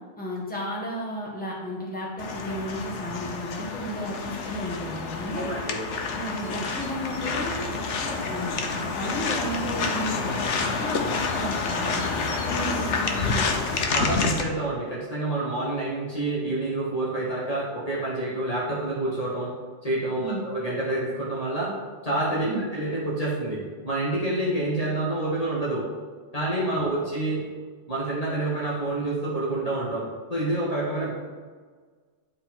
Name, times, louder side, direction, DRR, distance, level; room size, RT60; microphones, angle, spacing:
voice 1, 0.2-5.5 6.1-13.5 20.2-20.5 22.4-22.7 26.7-26.8, equal, 5° left, -5 dB, 1.6 m, -34 dB
sound 1, 2.2-14.4, left 4 dB, 80° left, 1.1 m, -28 dB
voice 2, 5.3-5.8 13.9-19.5 19.8-21.7 22.0-25.9 26.3-27.4 27.9-31.1, right 2 dB, 35° left, -7 dB, 1.5 m, -28 dB
9.7 x 4.0 x 4.4 m, 1.5 s
omnidirectional pair, 1.2 m